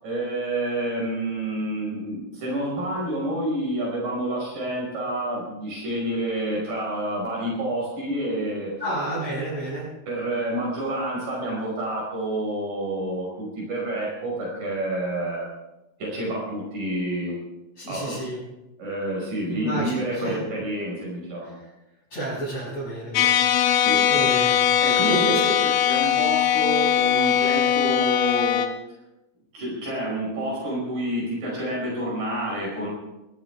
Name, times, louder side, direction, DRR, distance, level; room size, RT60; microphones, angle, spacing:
voice 1, 0.0-8.7 10.1-15.5 16.0-17.3 17.9-18.1 18.8-21.5 23.8-24.0 24.8-28.6 29.5-32.9, right 1 dB, 70° right, -4 dB, 6.8 m, -28 dB
voice 2, 8.8-9.9 17.8-18.4 19.5-20.4 21.4-21.7 22.1-24.7 24.9-25.5, right 1 dB, 45° left, -10 dB, 7.5 m, -31 dB
sound 1, 23.2-28.7, left 9 dB, 75° left, 2.6 m, -20 dB
23.5 x 15.5 x 3.4 m, 0.96 s
omnidirectional pair, 4.0 m